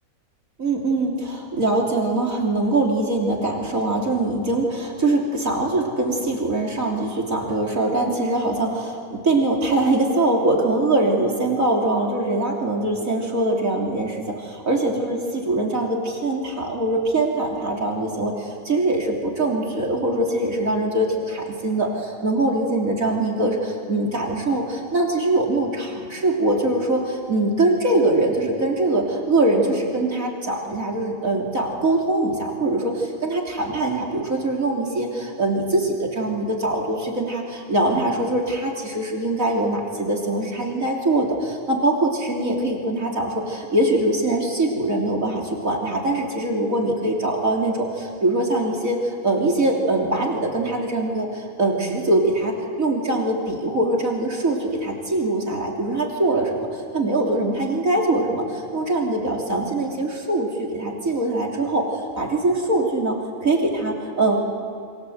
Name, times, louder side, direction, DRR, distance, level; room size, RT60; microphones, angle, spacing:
voice 1, 0.6-63.2 63.4-64.4, right 2 dB, 65° right, -1 dB, 3.6 m, -23 dB
28.5 x 23.5 x 8.0 m, 2.3 s
omnidirectional pair, 1.5 m